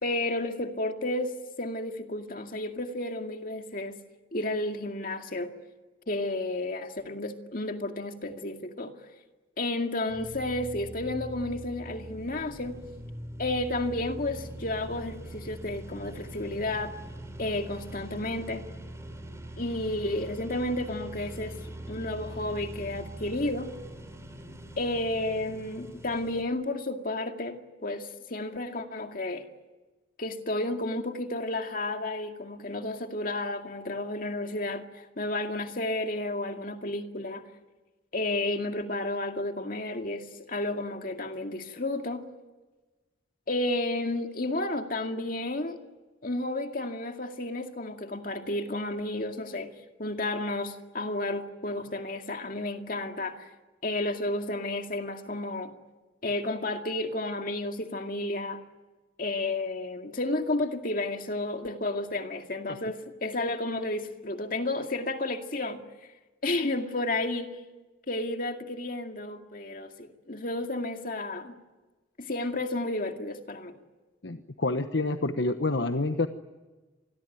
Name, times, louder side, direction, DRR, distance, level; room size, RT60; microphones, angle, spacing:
voice 1, 0.0-4.0 4.3-5.5 6.1-8.9 9.6-12.8 13.4-16.9 17.4-18.6 19.6-21.6 21.9-23.7 24.8-29.4 30.2-37.4 38.1-42.2 43.5-45.8 46.2-49.7 50.0-53.5 53.8-55.7 56.2-58.6 59.2-65.8 66.4-67.6 68.1-71.5 72.2-73.7, left 2 dB, 45° left, 5 dB, 2.2 m, -32 dB
sound 1, 10.1-26.4, right 1 dB, 15° right, 4.2 m, -42 dB
voice 2, 74.2-76.3, left 2 dB, 65° left, 8 dB, 1.1 m, -28 dB
27.0 x 21.0 x 9.2 m, 1.2 s
head